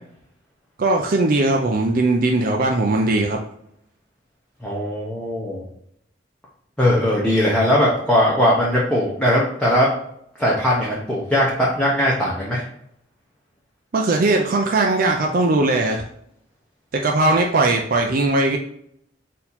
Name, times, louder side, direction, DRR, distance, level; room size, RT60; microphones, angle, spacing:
voice 1, 0.8-3.4 13.9-16.1 16.9-18.6, right 2 dB, 50° right, 1 dB, 0.4 m, -19 dB
voice 2, 4.6-5.6 6.8-9.9 10.4-12.6, equal, 5° left, -6 dB, 0.8 m, -19 dB
4.2 x 2.8 x 4.0 m, 0.72 s
head